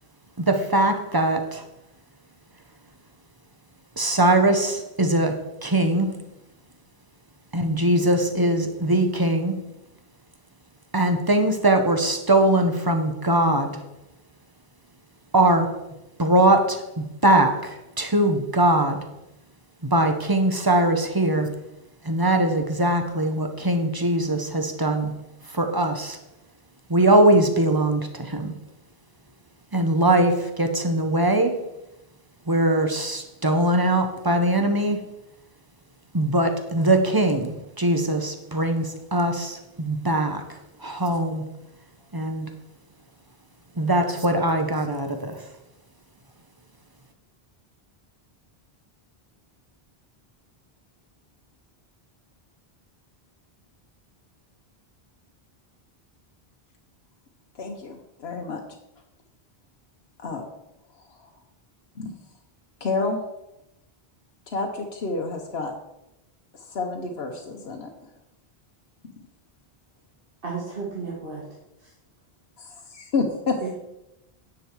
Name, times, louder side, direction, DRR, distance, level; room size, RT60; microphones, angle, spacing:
voice 1, 0.4-1.6 4.0-5.4 5.6-6.1 7.5-9.5 10.9-13.7 15.3-15.7 16.2-16.8 17.2-17.6 18.0-19.0 19.9-21.5 22.1-25.1 25.6-26.2 26.9-28.5 29.7-31.5 32.5-35.0 36.1-40.4 40.8-41.4 42.1-42.5 43.8-45.4, right 1 dB, 20° right, 5 dB, 1.1 m, -21 dB
voice 2, 57.6-58.6 60.2-60.4 60.9-61.3 62.0-62.1 62.8-63.2 64.5-65.7 66.5-67.9 72.6-73.6, left 3 dB, 80° left, 2 dB, 1.2 m, -29 dB
voice 3, 70.4-71.5 71.8-71.9 73.6-73.8, right 5 dB, 65° right, -4 dB, 1.9 m, -33 dB
10.0 x 7.4 x 4.7 m, 0.90 s
omnidirectional pair, 1.0 m